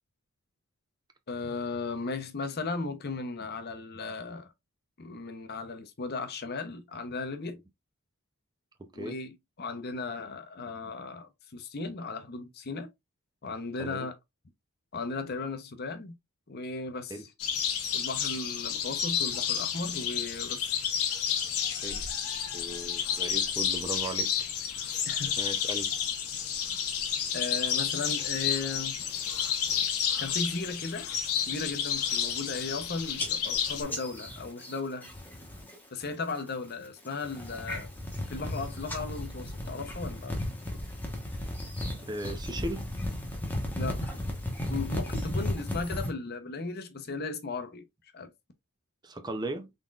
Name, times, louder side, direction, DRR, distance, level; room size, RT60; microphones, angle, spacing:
voice 1, 1.3-4.5 5.0-7.6 8.9-12.9 13.4-14.1 14.9-16.2 16.5-17.3 17.9-20.7 25.1-25.4 27.3-29.0 30.2-31.1 31.4-35.1 35.9-37.9 38.3-40.4 43.8-44.1 44.7-47.8 48.1-48.3, left 3 dB, 45° left, 0.7 m, -36 dB
voice 2, 8.8-9.1 13.8-14.1 17.1-17.3 21.8-22.1 22.5-24.5 24.7-24.9 25.4-25.9 42.0-42.9 49.0-49.7, right 2 dB, 20° right, 0.4 m, -37 dB
sound 1, 17.4-33.8, left 8 dB, 80° left, 0.8 m, -31 dB
sound 2, 29.1-29.9 30.3-30.7 31.0-31.4 31.9-32.0 32.2-32.8 33.2-35.7 36.0-36.5 37.0-46.1, left 1 dB, 10° left, 0.9 m, -35 dB
3.7 x 3.7 x 2.3 m
head